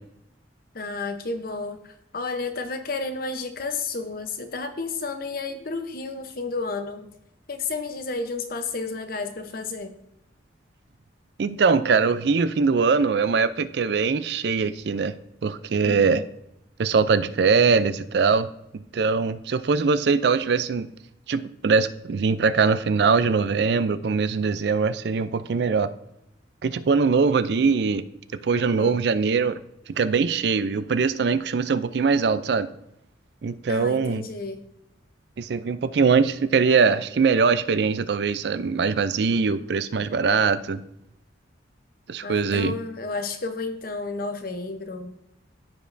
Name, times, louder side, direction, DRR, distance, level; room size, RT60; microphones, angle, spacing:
voice 1, 0.7-7.1 7.5-9.9 15.8-16.2 28.5-29.0 33.7-34.6 42.2-45.1, left 3 dB, 50° left, 7 dB, 0.8 m, -32 dB
voice 2, 11.4-15.2 15.4-16.2 16.8-18.5 18.9-20.9 21.3-25.9 26.6-28.0 28.4-29.6 29.9-32.7 33.4-34.3 35.4-40.8 42.1-42.7, right 5 dB, 60° right, 13 dB, 0.4 m, -22 dB
14.0 x 5.2 x 2.6 m, 0.82 s
head